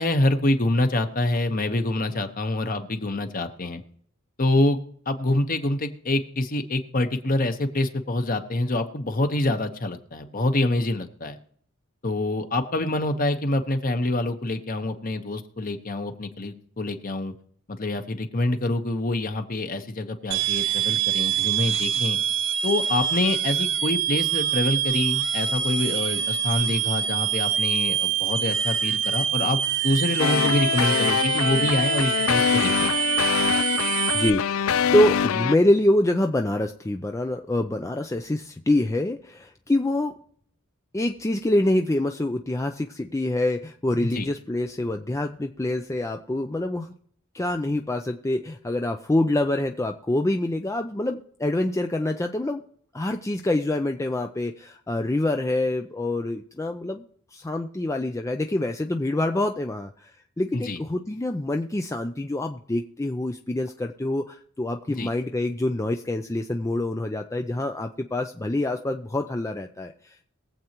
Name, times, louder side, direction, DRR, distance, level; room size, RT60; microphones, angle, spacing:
voice 1, 0.0-3.8 4.4-4.8 5.1-11.4 12.0-17.3 17.7-22.2 22.6-32.9 44.0-44.3 60.5-60.8 65.0-65.1, left 2 dB, 40° left, 7 dB, 1.1 m, -26 dB
sound 1, 20.3-34.3, right 10 dB, 60° right, 0.6 m, -25 dB
sound 2, 30.2-35.6, left 8 dB, 80° left, 0.4 m, -24 dB
voice 2, 34.1-40.2 40.9-46.9 47.3-52.6 52.9-57.0 57.3-70.2, left 1 dB, 15° left, 5 dB, 0.4 m, -26 dB
22.0 x 7.8 x 3.0 m, 0.62 s
head